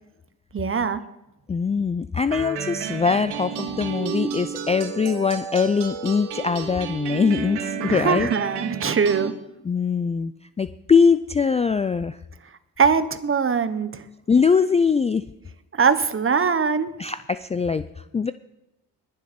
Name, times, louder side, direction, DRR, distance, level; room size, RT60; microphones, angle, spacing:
voice 1, 0.5-1.0 7.9-9.3 12.8-14.0 15.8-16.9, right 6 dB, 30° right, 12 dB, 1.1 m, -21 dB
voice 2, 1.5-8.3 9.6-10.3 10.6-12.2 14.3-15.3 17.0-18.3, left 5 dB, 15° left, 13 dB, 0.3 m, -22 dB
sound 1, 2.3-9.3, right 7 dB, 80° right, 1.5 m, -31 dB
21.0 x 7.4 x 4.4 m, 0.93 s
cardioid pair, 75°, 39 cm